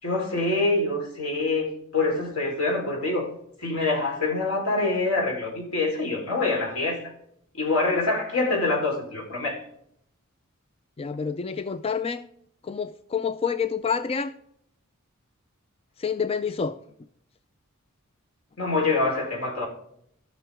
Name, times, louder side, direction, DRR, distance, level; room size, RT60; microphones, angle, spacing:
voice 1, 0.0-3.3 3.6-7.1 7.5-9.6 18.6-19.7, left 2 dB, 80° left, 4.0 m, -25 dB
voice 2, 11.0-12.2 12.6-14.3 16.0-16.8, left 6 dB, 25° left, 0.4 m, -28 dB
16.0 x 6.2 x 3.5 m
head